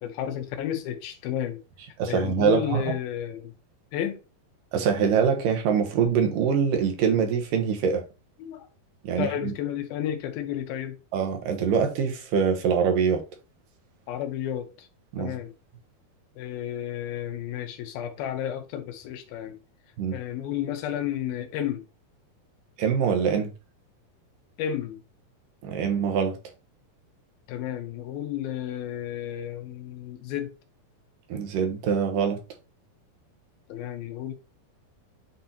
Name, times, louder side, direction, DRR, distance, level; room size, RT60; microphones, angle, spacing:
voice 1, 0.0-1.6 2.1-3.5 3.9-4.2 8.4-8.7 9.2-11.0 14.1-14.9 15.2-15.5 16.4-19.6 20.1-21.8 24.6-25.0 27.5-30.5 33.7-34.3, left 10 dB, 90° left, 2.8 m, -32 dB
voice 2, 2.0-2.8 4.7-8.0 9.0-9.5 11.1-13.2 15.1-15.4 20.0-20.2 22.8-23.5 25.6-26.4 31.3-32.4, right 6 dB, 75° right, 2.5 m, -24 dB
8.0 x 2.8 x 4.3 m
omnidirectional pair, 4.1 m